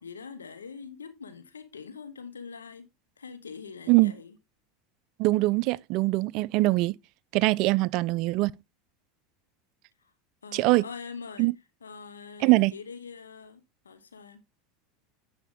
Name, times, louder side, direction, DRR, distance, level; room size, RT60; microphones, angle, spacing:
voice 1, 0.0-2.9 3.2-4.4 10.0-10.1 10.4-11.5 11.8-14.4, left 5 dB, 90° left, 0.9 m, -43 dB
voice 2, 5.2-6.9 7.3-8.5 10.5-10.8 11.4-11.5 12.4-12.7, right 20 dB, 55° right, 0.3 m, -22 dB
9.8 x 5.1 x 3.5 m
hypercardioid pair, 85°, 0 cm